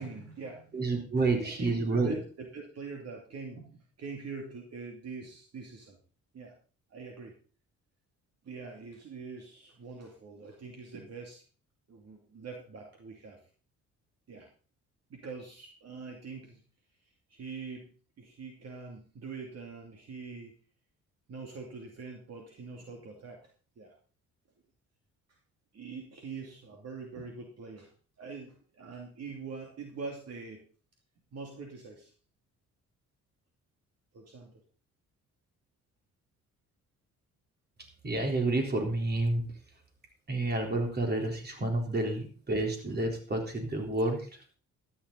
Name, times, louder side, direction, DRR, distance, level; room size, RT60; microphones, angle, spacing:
voice 1, 0.0-0.8 1.4-6.0 6.3-6.5 6.9-7.3 8.4-11.4 11.9-13.4 14.3-14.5 15.1-16.6 17.3-17.9 18.2-20.5 21.3-23.4 23.8-23.9 25.7-27.9 28.2-30.6 31.3-32.1 34.1-34.5, right 4 dB, 55° right, 1 dB, 2.6 m, -44 dB
voice 2, 0.7-2.1 38.0-39.5 40.3-44.3, right 2 dB, 35° right, 2 dB, 3.9 m, -29 dB
13.5 x 10.5 x 4.0 m, 0.39 s
cardioid pair, 90°, 30 cm